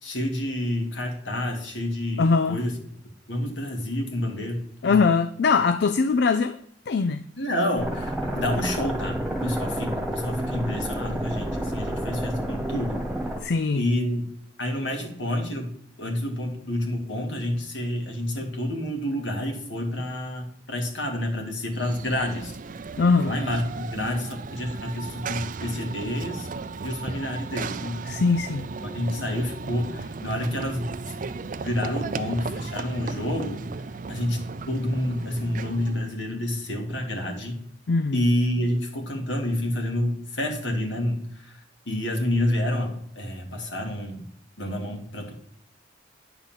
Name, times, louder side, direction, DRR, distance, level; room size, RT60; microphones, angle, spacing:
voice 1, 0.0-2.8 3.3-5.0 7.4-13.1 13.8-14.3 14.6-22.6 23.2-26.5 26.8-28.0 28.8-30.9 31.6-33.7 34.1-37.6 38.1-41.5 41.9-44.2 44.6-45.3, left 1 dB, 75° left, 2.1 m, -29 dB
voice 2, 2.2-2.6 4.8-6.6 6.9-7.2 13.4-13.9 23.0-23.3 28.1-28.7 37.9-38.2, left 4 dB, 60° left, 0.4 m, -21 dB
sound 1, 7.8-13.4, right 1 dB, ahead, 1.5 m, -30 dB
Run / Train, 21.7-36.2, right 4 dB, 45° right, 0.4 m, -35 dB
9.8 x 4.0 x 7.3 m
head